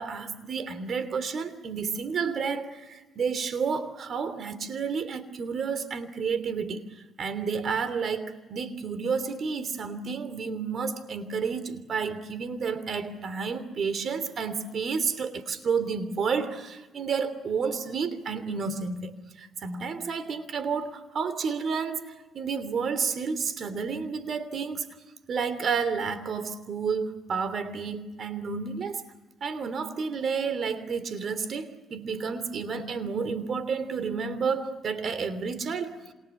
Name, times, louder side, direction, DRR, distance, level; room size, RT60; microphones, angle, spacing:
voice 1, 0.0-24.9 25.3-29.0 29.4-36.1, right 5 dB, 55° right, 3.0 m, -31 dB
28.5 x 27.0 x 7.2 m
cardioid pair, 90°, 0 cm